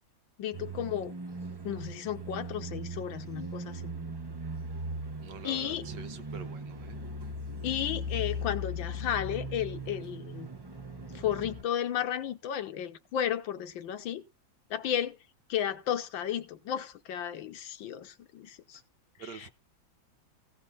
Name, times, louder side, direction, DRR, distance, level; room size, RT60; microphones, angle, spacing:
voice 1, 0.4-1.1 1.6-3.9 5.4-5.8 7.6-10.5 11.1-14.2 14.7-15.2 15.5-18.8, left 10 dB, 75° left, 1.6 m, -33 dB
sound 1, 0.5-11.6, equal, 30° right, 0.4 m, -39 dB
voice 2, 5.2-7.0 18.7-18.8 19.2-19.5, right 6 dB, 65° right, 1.5 m, -45 dB
16.0 x 5.4 x 5.5 m
omnidirectional pair, 2.2 m